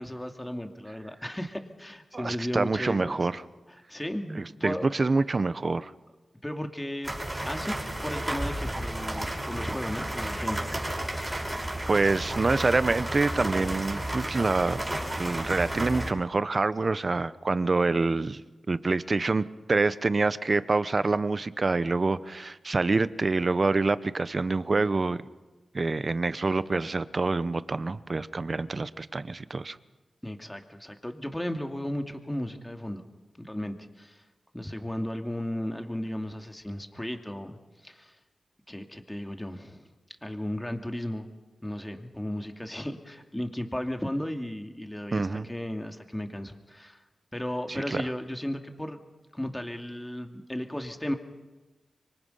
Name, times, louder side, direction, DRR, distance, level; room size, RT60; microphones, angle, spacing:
voice 1, 0.0-3.2 3.7-4.9 6.4-7.1 7.4-7.8 8.0-10.9 30.2-33.1 33.4-34.2 34.5-38.2 38.7-39.9 40.2-41.3 41.6-47.0 47.3-49.0 49.3-51.1, left 1 dB, 10° left, 5 dB, 2.5 m, -35 dB
voice 2, 2.1-3.4 4.3-5.9 11.9-14.8 15.2-18.4 18.7-25.2 25.7-29.8 45.1-45.5 47.7-48.0, right 3 dB, 45° right, 15 dB, 0.9 m, -26 dB
sound 1, 7.0-16.1, right 1 dB, 20° right, 6.3 m, -32 dB
26.5 x 24.0 x 5.7 m, 1.2 s
cardioid pair, 55°, 0 cm